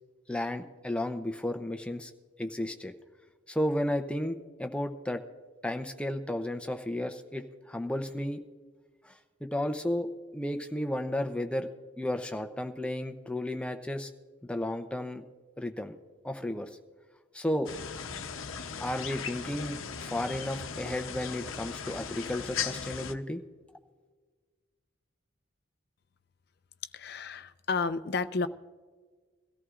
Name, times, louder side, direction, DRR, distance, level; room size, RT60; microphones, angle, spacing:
voice 1, 0.3-2.1 2.4-2.9 3.5-5.2 5.6-8.4 9.0-11.7 12.0-14.1 14.4-15.2 15.6-16.0 16.2-16.7 17.3-17.7 18.8-23.4, left 1 dB, 5° left, 6 dB, 0.6 m, -33 dB
sound 1, 17.7-23.1, left 6 dB, 80° left, 0.8 m, -38 dB
voice 2, 26.9-28.5, left 4 dB, 50° left, 12 dB, 0.5 m, -31 dB
22.5 x 14.0 x 2.5 m, 1.5 s
head